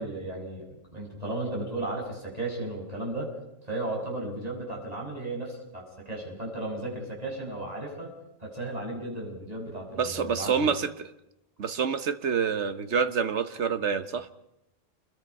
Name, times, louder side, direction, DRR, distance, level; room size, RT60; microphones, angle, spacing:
voice 1, 0.0-3.3 3.6-8.1 8.4-10.7, right 2 dB, 30° right, -1 dB, 6.8 m, -35 dB
voice 2, 10.0-10.9 11.6-14.3, right 6 dB, 60° right, 12 dB, 1.4 m, -27 dB
29.0 x 21.5 x 5.5 m, 0.86 s
omnidirectional pair, 1.3 m